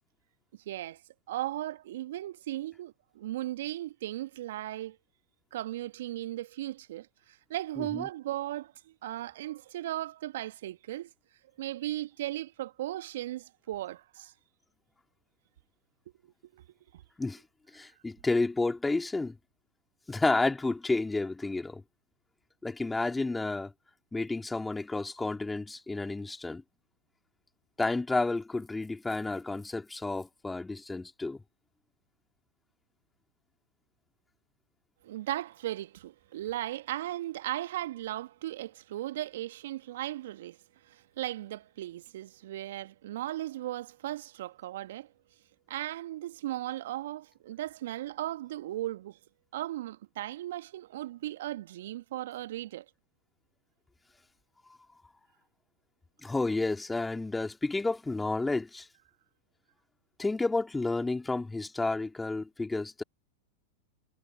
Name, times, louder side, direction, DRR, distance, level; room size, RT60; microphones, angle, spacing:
voice 1, 0.6-1.0 1.3-5.0 5.5-11.1 11.6-14.3 16.2-16.6 16.9-17.0 35.0-40.6 40.9-45.1 45.7-49.2 49.5-52.8, right 14 dB, 65° right, 1.6 m, -37 dB
voice 2, 17.7-19.4 20.1-21.8 22.6-23.7 24.1-26.6 27.8-31.4 56.2-58.9 60.2-63.0, left 3 dB, 10° left, 3.6 m, -31 dB
hypercardioid pair, 95°, 0 cm